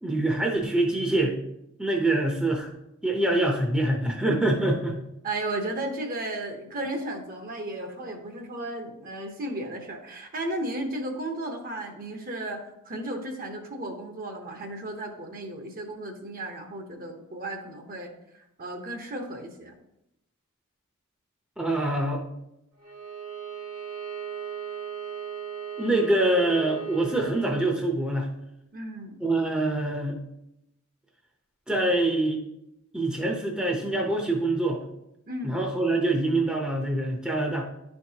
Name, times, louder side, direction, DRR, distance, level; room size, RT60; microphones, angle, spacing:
voice 1, 0.0-1.4 1.8-2.7 3.0-5.0 21.6-22.2 25.8-28.3 29.2-30.2 31.7-32.4 32.9-34.8 35.4-37.7, right 2 dB, 5° right, 0 dB, 0.7 m, -25 dB
voice 2, 5.2-19.7 28.7-29.2 35.3-35.6, right 1 dB, 40° right, 4 dB, 0.9 m, -34 dB
Bowed string instrument, 22.8-27.7, right 9 dB, 90° right, 2.3 m, -37 dB
10.5 x 4.6 x 2.8 m, 0.85 s
head